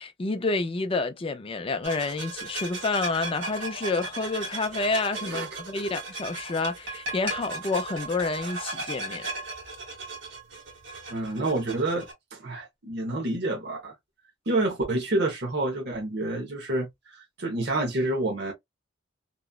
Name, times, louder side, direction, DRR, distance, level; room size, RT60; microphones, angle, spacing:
voice 1, 0.0-9.3, left 3 dB, 30° left, 0.4 m, -29 dB
sound 1, 1.8-12.1, right 2 dB, 80° right, 1.5 m, -36 dB
voice 2, 11.1-13.9 14.5-18.5, right 2 dB, 55° right, 0.9 m, -28 dB
3.0 x 2.4 x 2.3 m
head